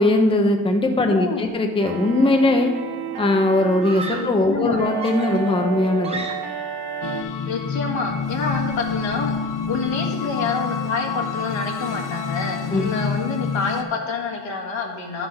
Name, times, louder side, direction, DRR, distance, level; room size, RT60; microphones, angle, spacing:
voice 1, 0.0-2.7 3.2-6.2 12.7-12.9, left 2 dB, 10° left, 4 dB, 0.7 m, -19 dB
voice 2, 1.0-1.5 4.2-4.8 7.5-9.3 9.7-15.3, left 4 dB, 80° left, -1 dB, 2.0 m, -27 dB
sound 1, 1.8-7.2, right 7 dB, 55° right, 1.2 m, -32 dB
Screaming, 3.8-4.4 5.0-6.7, right 3 dB, 15° right, 0.9 m, -34 dB
sound 2, 7.0-13.8, left 5 dB, 45° left, 0.8 m, -27 dB
11.0 x 5.7 x 5.6 m, 1.4 s
wide cardioid pair, 150°, 45 cm